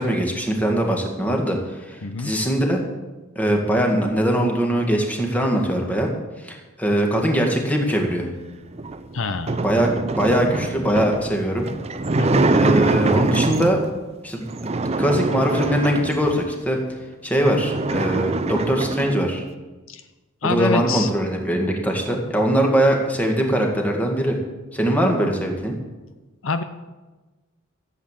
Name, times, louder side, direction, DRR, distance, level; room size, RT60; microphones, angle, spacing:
voice 1, 0.0-2.8 3.4-6.1 6.4-8.3 9.6-11.7 12.5-13.8 14.2-14.4 15.0-16.8 17.2-19.5 20.4-24.4 24.7-25.8, right 1 dB, 5° left, 1 dB, 2.0 m, -21 dB
sound 1, 8.7-13.9 14.5-16.5 17.0-17.1 17.3-19.2, right 2 dB, 30° right, 0.6 m, -24 dB
voice 2, 9.1-9.6 12.2-12.5 19.9-20.0 20.4-21.1 26.4-26.6, left 4 dB, 60° left, 9 dB, 0.7 m, -25 dB
14.5 x 8.4 x 7.5 m, 1.2 s
head